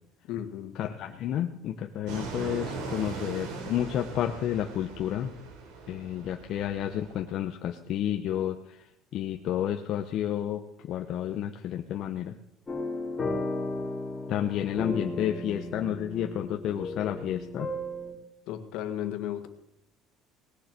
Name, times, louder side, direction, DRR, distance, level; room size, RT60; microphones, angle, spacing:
voice 1, 0.3-0.8 18.5-19.5, left 11 dB, 65° left, 7 dB, 1.9 m, -34 dB
voice 2, 0.8-5.3 5.9-8.8 9.1-12.3 14.3-17.7, left 11 dB, 50° left, 4 dB, 0.9 m, -31 dB
Fixed-wing aircraft airplane, 2.1-7.2, right 4 dB, 80° right, 3.3 m, -39 dB
sound 1, 12.7-18.1, left 2 dB, 15° left, 3.0 m, -35 dB
19.0 x 7.5 x 6.7 m, 0.83 s
cardioid pair, 165°, 0 cm